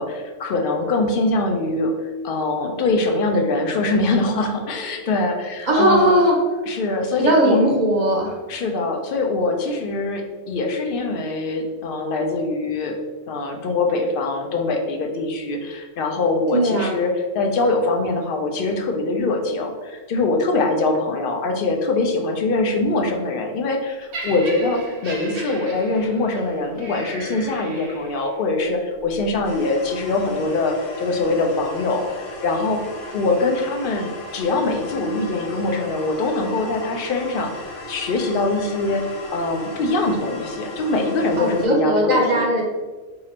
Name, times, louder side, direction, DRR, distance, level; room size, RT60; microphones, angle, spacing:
voice 1, 0.0-6.2 6.7-7.6 8.5-13.0 13.3-32.8 33.1-42.5, left 2 dB, 60° left, 3 dB, 0.6 m, -23 dB
voice 2, 5.7-6.4 7.2-8.4 16.5-17.0 41.4-42.6, right 1 dB, 45° right, -2 dB, 0.7 m, -18 dB
Laughter, 24.1-28.4 29.2-29.3, right 2 dB, 65° right, 1.1 m, -36 dB
sound 1, 29.4-41.7, left 2 dB, 85° left, 1.1 m, -37 dB
2.9 x 2.5 x 4.1 m, 1.3 s
omnidirectional pair, 1.2 m